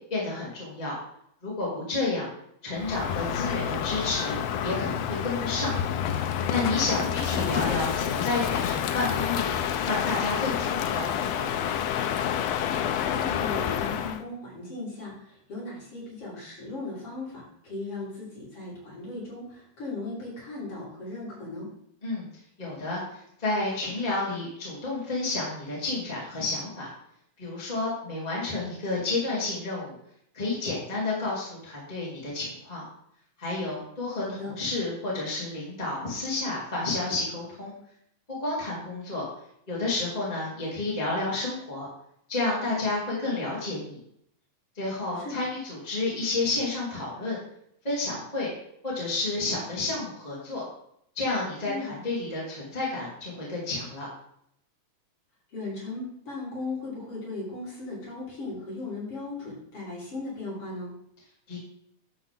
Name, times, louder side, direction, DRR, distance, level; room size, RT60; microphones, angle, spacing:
voice 1, 0.1-0.9 1.4-2.3 2.6-5.7 6.5-9.6 9.8-11.5 22.0-22.3 22.6-26.9 27.4-29.9 30.3-32.8 33.4-37.7 38.3-39.2 39.7-41.9 42.3-44.0 44.7-47.4 47.8-48.5 48.8-50.6 51.1-54.1 61.5-61.6, left 2 dB, 15° left, -7 dB, 3.3 m, -30 dB
Crow, 2.8-14.2, left 9 dB, 75° left, 1.6 m, -28 dB
voice 2, 7.0-7.4 13.0-21.7 34.2-34.5 45.2-45.3 51.7-52.0 55.5-60.9, left 2 dB, 50° left, -7 dB, 5.5 m, -37 dB
12.0 x 7.8 x 3.9 m, 0.71 s
omnidirectional pair, 3.4 m